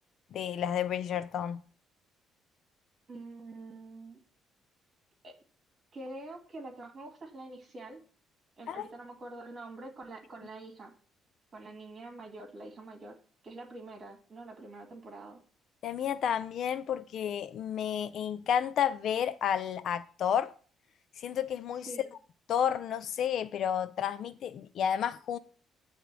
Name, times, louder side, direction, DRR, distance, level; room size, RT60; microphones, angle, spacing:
voice 1, 0.3-1.6 8.7-8.8 15.8-20.5 21.2-21.9 22.5-25.4, left 9 dB, 60° left, 0.4 m, -31 dB
voice 2, 3.1-4.2 5.2-5.3 5.9-8.0 8.6-10.9 11.5-13.2 13.4-15.4 21.9-22.1, right 2 dB, 35° right, 2.2 m, -45 dB
8.8 x 3.5 x 6.1 m
cardioid pair, 130°, 0 cm